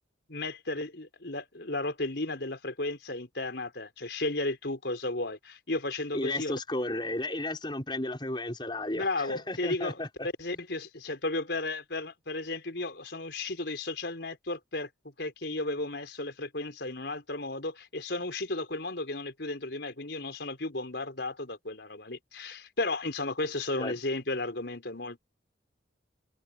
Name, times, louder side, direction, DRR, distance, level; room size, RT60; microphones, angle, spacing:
voice 1, 0.3-6.5 8.9-10.0 10.4-14.9 15.2-25.2, left 2 dB, 70° left, 4.4 m, -34 dB
voice 2, 6.1-10.3 23.8-24.0, left 1 dB, 25° left, 5.9 m, -33 dB
head